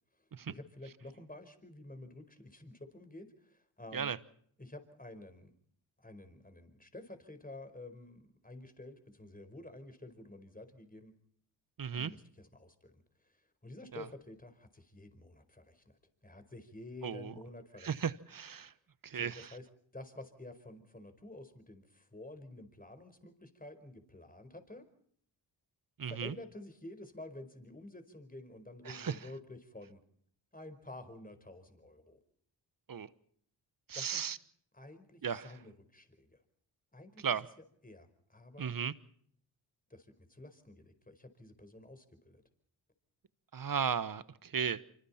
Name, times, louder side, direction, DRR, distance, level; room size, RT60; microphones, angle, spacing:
voice 1, 0.2-4.2 4.6-5.5 6.0-11.2 11.9-15.9 16.2-17.9 19.1-19.7 19.9-24.8 26.1-30.0 30.5-32.2 33.9-34.2 34.7-36.4 36.9-37.4 37.8-38.8 39.9-42.4, left 2 dB, 15° left, 8 dB, 4.7 m, -50 dB
voice 2, 11.8-12.1 13.9-14.0 17.0-17.3 17.8-18.7 19.0-19.5 26.0-26.3 28.9-29.1 32.9-33.1 33.9-34.4 35.2-35.5 37.2-37.5 38.6-38.9 43.5-44.8, right 7 dB, 40° right, 17 dB, 1.1 m, -35 dB
26.0 x 25.0 x 4.4 m, 0.63 s
supercardioid pair, 40°, 50 cm